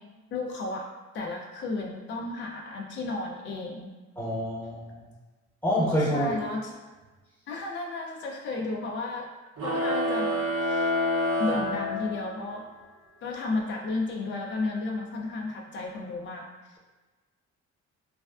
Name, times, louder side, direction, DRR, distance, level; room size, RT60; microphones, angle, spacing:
voice 1, 0.3-0.9 1.1-3.9 6.1-6.7 7.5-9.3 9.6-10.4 10.6-10.9 11.4-12.7 13.2-16.5, left 3 dB, 40° left, 0 dB, 0.4 m, -33 dB
voice 2, 4.2-5.1 5.6-6.4, equal, 5° left, -10 dB, 1.0 m, -27 dB
sound 1, 9.6-12.5, left 1 dB, 50° right, 0.6 m, -27 dB
3.2 x 2.3 x 2.3 m, 1.2 s
cardioid pair, 90°, 30 cm